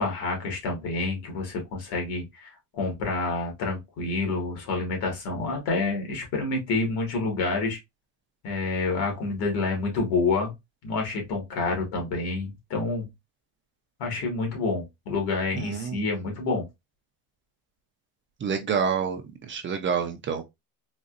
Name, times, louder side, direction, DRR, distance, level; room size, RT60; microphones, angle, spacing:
voice 1, 0.0-7.8 8.4-10.5 10.8-13.1 14.0-16.6, left 3 dB, 75° left, 1.9 m, -28 dB
voice 2, 15.6-16.0 18.4-19.2 19.5-20.4, right 6 dB, 30° right, 0.6 m, -27 dB
4.0 x 2.5 x 2.5 m
cardioid pair, 130°, 38 cm